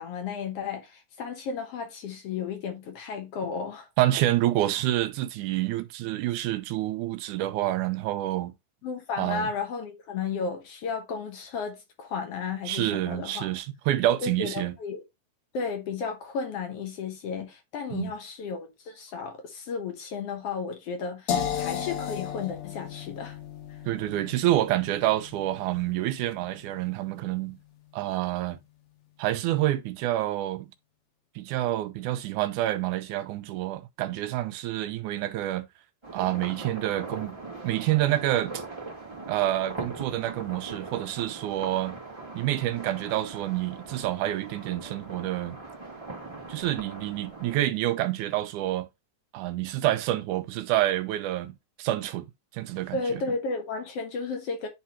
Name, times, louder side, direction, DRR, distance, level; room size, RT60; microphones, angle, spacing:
voice 1, 0.0-3.9 8.8-13.5 14.2-15.0 15.5-23.4 23.7-23.8 52.9-54.7, left 5 dB, 60° left, 1.8 m, -33 dB
voice 2, 4.0-8.5 9.2-9.5 12.7-14.7 17.9-18.1 23.9-27.6 27.9-28.6 29.2-30.7 31.4-35.7 36.1-37.4 37.6-38.6 39.3-42.0 42.3-45.6 46.5-48.9 49.3-52.3 52.5-53.2, right 14 dB, 80° right, 2.0 m, -28 dB
sound 1, 21.3-27.2, left 8 dB, 80° left, 2.9 m, -35 dB
sound 2, 36.0-47.6, right 3 dB, 35° right, 0.4 m, -41 dB
10.0 x 3.5 x 2.8 m
omnidirectional pair, 3.7 m